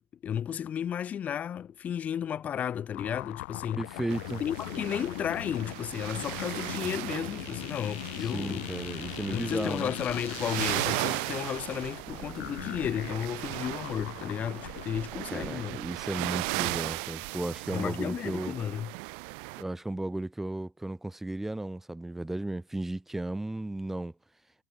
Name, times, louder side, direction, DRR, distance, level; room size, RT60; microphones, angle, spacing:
voice 1, 0.2-3.8 4.4-8.7 9.3-15.8 17.7-18.9, left 9 dB, 20° left, 1.8 m, -33 dB
sound 1, 2.9-14.9, left 23 dB, 55° left, 4.8 m, -40 dB
voice 2, 3.8-4.4 8.2-9.9 15.3-18.5 19.6-24.1, right 2 dB, 5° right, 3.8 m, -34 dB
sound 2, 4.1-19.6, right 39 dB, 45° right, 1.4 m, -37 dB
supercardioid pair, 170°, 8 cm